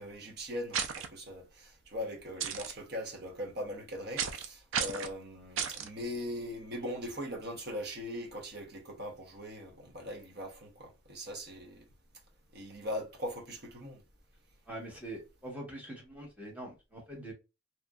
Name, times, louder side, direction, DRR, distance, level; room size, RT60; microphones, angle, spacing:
voice 1, 0.0-11.9 12.5-14.0, equal, 50° right, 0.9 m, -40 dB
sound 1, 0.7-1.1 2.4-2.7 4.2-4.5 4.7-5.1 5.6-5.9, right 7 dB, 70° right, 0.4 m, -33 dB
voice 2, 14.7-17.3, right 1 dB, 5° right, 1.0 m, -44 dB
2.9 x 2.4 x 2.3 m
head